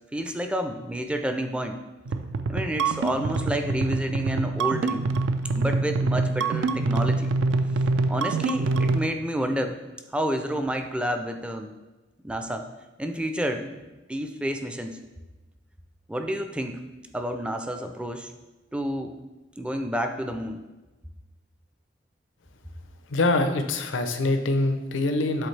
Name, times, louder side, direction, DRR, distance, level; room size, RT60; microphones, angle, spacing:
voice 1, 0.1-1.8 2.5-5.1 5.5-7.3 8.1-9.8 10.1-11.7 12.2-12.7 13.0-13.8 14.1-15.0 16.1-16.8 17.1-18.3 18.7-19.1 19.6-20.6, equal, 5° right, 6 dB, 0.4 m, -29 dB
sound 1, 2.0-9.1, right 3 dB, 75° right, 0.4 m, -25 dB
voice 2, 23.1-25.5, left 2 dB, 85° left, 7 dB, 0.6 m, -24 dB
7.8 x 3.8 x 3.2 m, 1.1 s
head